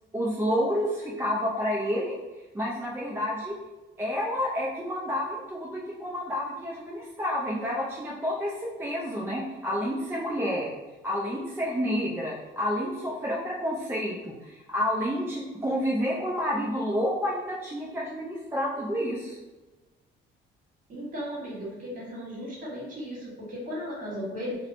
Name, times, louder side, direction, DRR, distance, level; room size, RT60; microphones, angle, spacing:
voice 1, 0.1-2.2 2.5-3.6 4.0-10.7 11.0-19.4, equal, 10° right, -5 dB, 0.4 m, -29 dB
voice 2, 20.9-24.6, equal, 40° right, -6 dB, 1.4 m, -36 dB
2.8 x 2.1 x 2.5 m, 1.1 s
cardioid pair, 85°, 20 cm